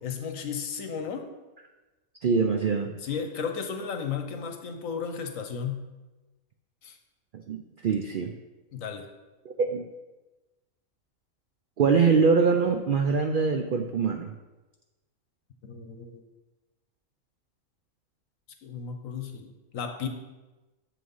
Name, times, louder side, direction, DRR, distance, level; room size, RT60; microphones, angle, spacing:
voice 1, 0.0-1.3 3.0-5.9 6.8-7.0 8.7-9.1 15.6-16.2 18.6-20.1, left 6 dB, 70° left, 6 dB, 1.3 m, -34 dB
voice 2, 2.2-2.9 7.5-8.3 9.6-9.8 11.8-14.3, right 5 dB, 65° right, 5 dB, 0.5 m, -23 dB
6.9 x 6.2 x 5.4 m, 1.1 s
omnidirectional pair, 1.5 m